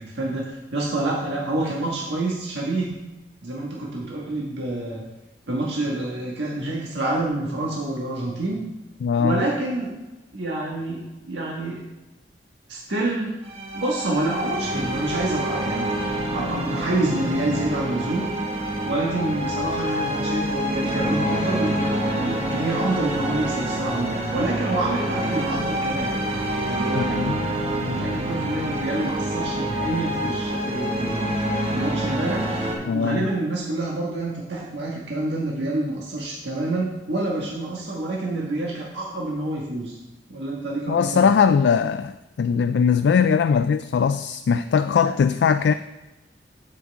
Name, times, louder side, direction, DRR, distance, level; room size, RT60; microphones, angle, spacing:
voice 1, 0.0-2.9 3.4-5.0 5.5-8.6 9.2-9.9 10.3-11.9 12.7-13.3 13.7-15.9 16.3-18.2 18.8-26.1 26.7-27.4 27.8-31.3 31.7-32.5 32.9-40.0 40.3-41.3, right 2 dB, 85° right, -4 dB, 1.6 m, -27 dB
voice 2, 9.0-9.4 27.0-27.4 32.9-33.2 40.9-42.1 42.4-45.7, left 6 dB, 75° left, 10 dB, 0.3 m, -20 dB
sound 1, 13.4-32.8, right 1 dB, 35° right, 1.2 m, -27 dB
8.0 x 7.6 x 3.5 m, 1.0 s
head